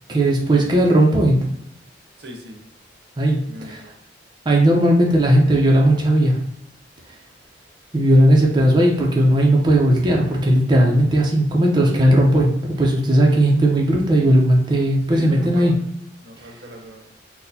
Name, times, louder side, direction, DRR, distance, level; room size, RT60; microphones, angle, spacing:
voice 1, 0.1-1.4 3.2-3.4 3.6-3.8 4.5-6.4 7.9-15.7, right 1 dB, 25° right, -2 dB, 0.5 m, -16 dB
voice 2, 2.2-2.6 3.5-3.9 15.1-15.9 16.2-17.0, equal, 70° right, 2 dB, 0.7 m, -39 dB
4.2 x 2.1 x 2.6 m, 0.74 s
head